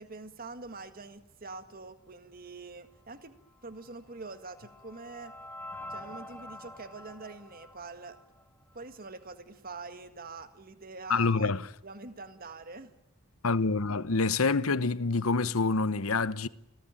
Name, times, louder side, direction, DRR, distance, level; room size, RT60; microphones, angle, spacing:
voice 1, 0.0-5.3 5.9-8.2 8.7-11.5 11.8-12.9, right 3 dB, 45° right, 1.8 m, -45 dB
sound 1, 3.8-8.9, left 1 dB, 10° left, 2.0 m, -47 dB
voice 2, 11.1-11.6 13.4-16.5, left 4 dB, 85° left, 1.0 m, -27 dB
28.5 x 18.5 x 9.0 m
head